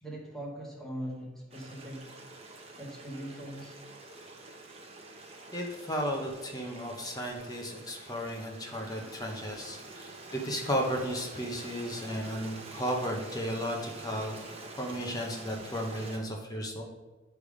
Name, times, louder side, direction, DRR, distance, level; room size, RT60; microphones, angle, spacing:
voice 1, 0.0-2.1 2.8-3.8 8.9-9.1, equal, ahead, -3 dB, 1.5 m, -41 dB
Stream, 1.5-16.2, right 2 dB, 30° right, 0.9 m, -47 dB
voice 2, 5.5-14.5 14.8-16.8, equal, 20° left, 0 dB, 0.9 m, -34 dB
10.0 x 3.5 x 4.9 m, 1.2 s
head